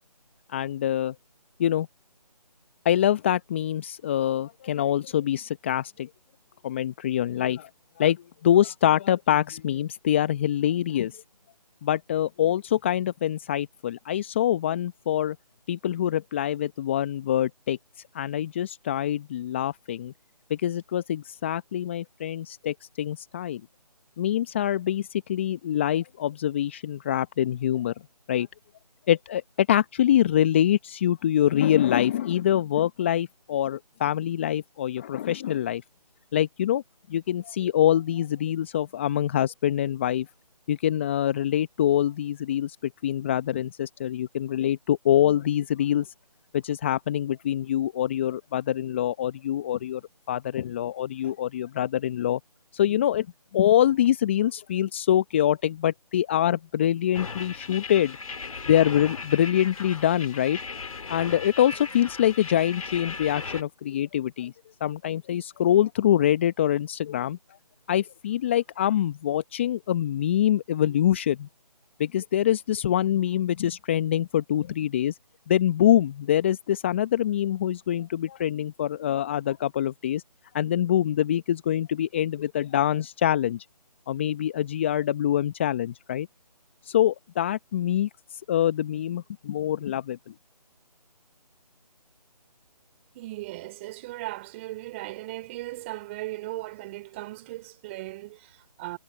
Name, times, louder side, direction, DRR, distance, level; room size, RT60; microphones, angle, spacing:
voice 1, 0.5-1.1 1.6-1.9 2.8-6.1 6.6-7.7 8.0-11.2 11.8-15.4 15.7-17.8 18.1-20.1 20.5-23.6 24.2-27.9 28.3-28.5 29.1-35.8 36.3-36.8 37.1-40.3 40.7-46.1 46.5-50.0 50.3-52.4 52.7-53.3 53.5-58.2 58.7-60.6 61.1-64.5 64.8-67.4 67.9-71.5 72.0-75.2 75.5-80.2 80.5-83.6 84.1-86.3 86.8-90.3, left 11 dB, 15° left, 0.9 m, -25 dB
sound 1, 57.1-63.6, left 4 dB, 55° left, 2.7 m, -37 dB
voice 2, 93.1-99.0, right 19 dB, 20° right, 3.9 m, -37 dB
figure-of-eight pair, 155°, 21 cm